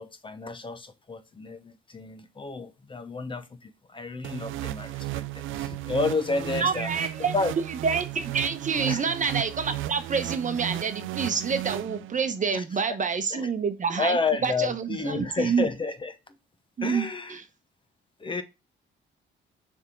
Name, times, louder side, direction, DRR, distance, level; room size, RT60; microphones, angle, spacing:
voice 1, 0.0-6.9 7.3-7.5 8.9-9.1 12.5-13.0 13.3-13.5 14.0-16.4 16.8-17.4 18.2-18.4, left 4 dB, 25° left, 0.9 m, -31 dB
sound 1, 4.2-12.4, right 14 dB, 80° right, 0.4 m, -34 dB
voice 2, 6.6-7.3 7.8-14.2 14.4-15.7 16.8-17.4, right 5 dB, 40° right, 1.0 m, -27 dB
6.5 x 3.6 x 4.5 m
cardioid pair, 90°, 20 cm